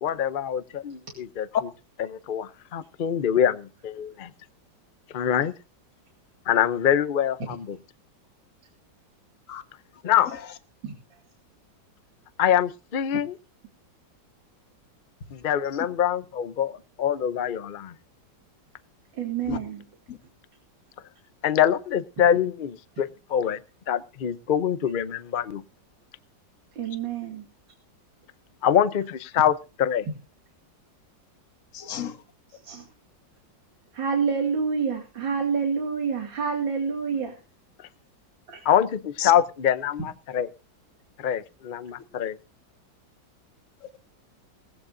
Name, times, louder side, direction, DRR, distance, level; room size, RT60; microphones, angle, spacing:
voice 1, 0.0-1.5 2.1-4.3 5.1-5.5 6.5-7.8 10.0-10.3 12.4-13.3 15.3-17.9 21.4-23.6 23.9-25.6 28.6-30.1 38.6-40.5 41.2-42.4, left 9 dB, 80° left, 0.4 m, -24 dB
voice 2, 10.8-11.2 19.1-19.8 26.8-27.5 32.6-32.9 33.9-37.4 38.5-38.6, right 6 dB, 80° right, 3.1 m, -28 dB
voice 3, 31.7-32.2 39.2-39.3 43.8-44.0, left 9 dB, 45° left, 1.6 m, -31 dB
19.0 x 15.5 x 2.6 m
omnidirectional pair, 2.0 m